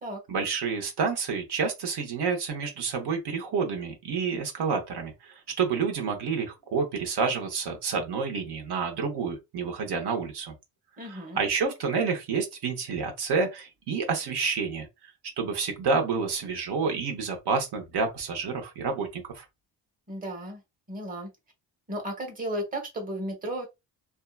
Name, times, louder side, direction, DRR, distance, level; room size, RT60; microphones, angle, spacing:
voice 1, 0.3-10.5 11.1-14.9 15.4-19.4, right 5 dB, 60° right, 1.0 m, -29 dB
voice 2, 11.0-11.4 20.1-20.6 20.9-21.3 21.9-23.7, right 1 dB, 20° right, 1.0 m, -34 dB
2.7 x 2.3 x 2.3 m
cardioid pair, 110°, 44 cm